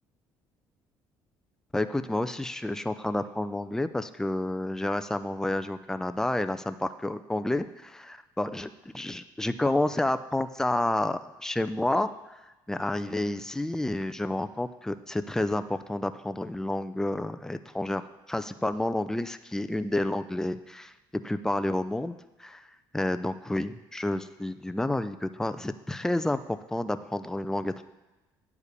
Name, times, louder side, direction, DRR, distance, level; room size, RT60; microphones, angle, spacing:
voice 1, 1.7-12.1 12.7-18.0 18.3-22.1 22.4-22.7 22.9-27.8, left 1 dB, 5° left, 10 dB, 0.5 m, -30 dB
9.7 x 4.8 x 6.7 m, 1.1 s
supercardioid pair, 80°, 9 cm